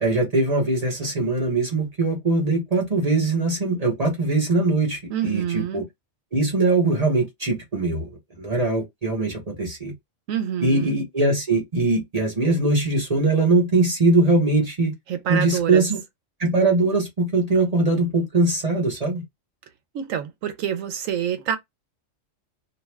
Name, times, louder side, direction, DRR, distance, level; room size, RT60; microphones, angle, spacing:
voice 1, 0.0-5.8 6.3-8.1 8.4-9.9 10.6-14.9 15.3-16.0 16.4-19.2, right 2 dB, 35° right, 0.9 m, -21 dB
voice 2, 5.1-5.8 10.3-11.0 15.1-15.8 19.9-21.6, right 9 dB, 85° right, 1.0 m, -27 dB
2.6 x 2.3 x 3.1 m
omnidirectional pair, 1.3 m